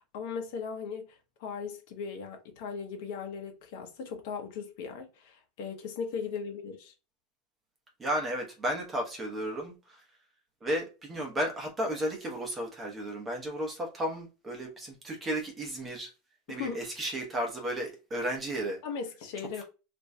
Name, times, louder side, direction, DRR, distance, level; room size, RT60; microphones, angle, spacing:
voice 1, 0.1-6.9 16.6-16.8 18.8-19.6, left 6 dB, 60° left, 0.9 m, -38 dB
voice 2, 8.0-10.0 10.6-16.1 16.5-18.8, right 1 dB, 15° right, 0.9 m, -33 dB
3.0 x 2.6 x 3.2 m
supercardioid pair, 170°, 0 cm